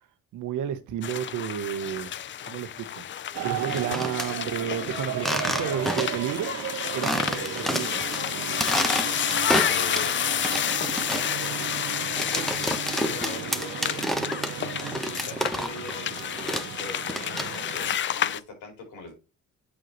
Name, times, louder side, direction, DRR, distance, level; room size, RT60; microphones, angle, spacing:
voice 1, 0.3-2.1 2.4-3.1 3.4-6.6 6.9-8.0, right 10 dB, 85° right, 1.1 m, -31 dB
sound 1, 1.0-18.4, left 10 dB, 40° left, 0.4 m, -30 dB
sound 2, 3.3-18.0, right 12 dB, 65° right, 0.6 m, -36 dB
sound 3, 3.6-4.3 5.2-6.3 6.6-6.7 7.0-8.2 8.5-10.1 10.4-15.9 16.2-17.8, equal, ahead, 1.0 m, -29 dB
voice 2, 5.2-5.9 7.3-7.8 9.6-10.2 11.4-11.5 12.3-12.5 13.1-14.0 14.8-19.1, left 3 dB, 85° left, 4.4 m, -40 dB
8.6 x 5.1 x 3.1 m
cardioid pair, 90°, 30 cm